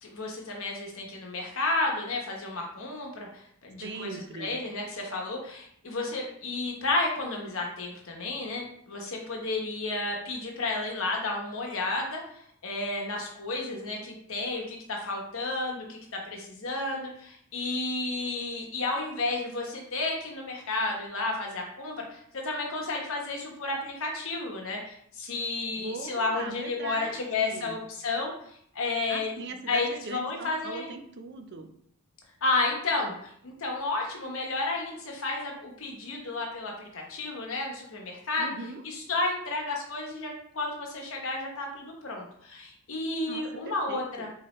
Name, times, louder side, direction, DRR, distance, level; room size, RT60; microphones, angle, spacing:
voice 1, 0.0-29.3 29.7-30.9 32.4-38.5 38.8-44.3, left 2 dB, 65° left, 0 dB, 1.1 m, -32 dB
voice 2, 3.8-4.6 25.7-27.8 29.1-31.7 38.4-38.8 43.3-44.3, right 3 dB, 50° right, 6 dB, 0.5 m, -40 dB
4.5 x 3.2 x 3.0 m, 0.66 s
head